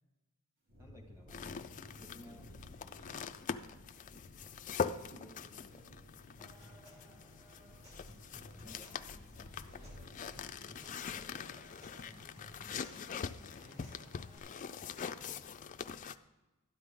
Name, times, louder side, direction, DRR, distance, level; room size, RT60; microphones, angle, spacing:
sound 1, 0.7-13.4, left 1 dB, 50° right, 2.6 m, -57 dB
voice 1, 0.8-2.5 5.0-5.7 8.6-8.9, equal, 15° right, 1 dB, 1.9 m, -58 dB
sound 2, 1.3-16.2, left 6 dB, 35° left, 0.4 m, -43 dB
voice 2, 2.1-2.6 2.9-3.6 5.4-5.9 8.3-10.9 11.2-12.1 12.7-15.2, equal, 70° right, -5 dB, 4.2 m, -63 dB
Human voice / Acoustic guitar / Percussion, 6.4-14.4, equal, 30° right, 2.6 m, -59 dB
12.5 x 9.9 x 3.8 m, 1.1 s
head